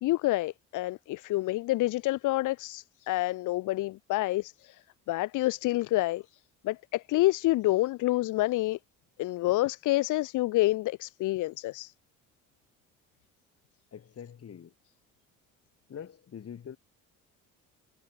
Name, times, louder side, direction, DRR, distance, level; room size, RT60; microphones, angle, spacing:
voice 1, 0.0-4.8 5.1-6.2 6.6-8.8 9.2-11.9, left 18 dB, 65° left, 0.7 m, -28 dB
voice 2, 13.9-14.7 15.9-16.8, left 8 dB, 45° left, 7.0 m, -44 dB
supercardioid pair, 90°, 33 cm